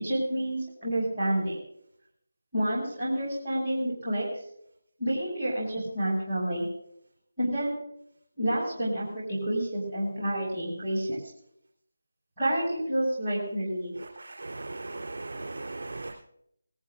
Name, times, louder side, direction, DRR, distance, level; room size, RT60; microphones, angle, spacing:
voice 1, 0.0-1.6 2.5-4.3 5.0-6.7 7.4-7.8 8.4-11.2 12.4-13.9, right 1 dB, 25° right, -9 dB, 7.0 m, -29 dB
voice 2, 14.2-16.1, right 2 dB, 55° right, -4 dB, 4.0 m, -38 dB
20.0 x 14.5 x 2.7 m, 0.70 s
figure-of-eight pair, 160°, 0 cm